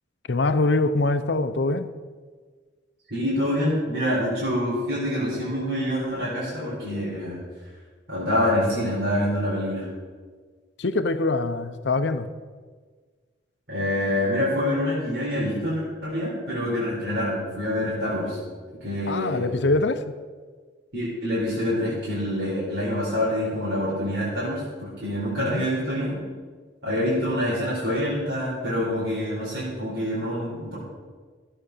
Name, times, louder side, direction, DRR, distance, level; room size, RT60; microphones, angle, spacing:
voice 1, 0.3-1.9 10.8-12.3 19.1-20.0 25.5-25.7, left 2 dB, 70° left, 10 dB, 0.7 m, -23 dB
voice 2, 3.1-7.4 8.1-9.9 13.7-18.4 18.8-19.6 20.9-26.2 26.8-30.8, left 1 dB, 70° right, -8 dB, 4.4 m, -26 dB
14.0 x 8.7 x 6.7 m, 1.5 s
head